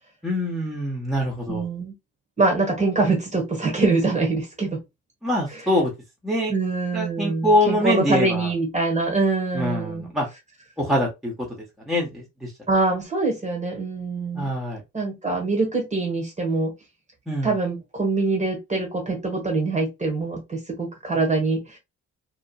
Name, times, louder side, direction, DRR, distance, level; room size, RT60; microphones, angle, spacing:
voice 1, 0.2-1.6 5.2-5.9 6.2-6.5 6.9-8.5 9.5-10.3 10.8-11.3 11.9-12.5 14.3-14.8 17.3-17.5, left 1 dB, ahead, 1.0 m, -24 dB
voice 2, 1.5-1.9 2.4-4.8 5.5-5.6 6.5-10.1 12.7-14.5 14.9-16.7 17.4-21.8, right 3 dB, 25° right, 1.3 m, -24 dB
2.9 x 2.3 x 2.2 m
cardioid pair, 90°, 30 cm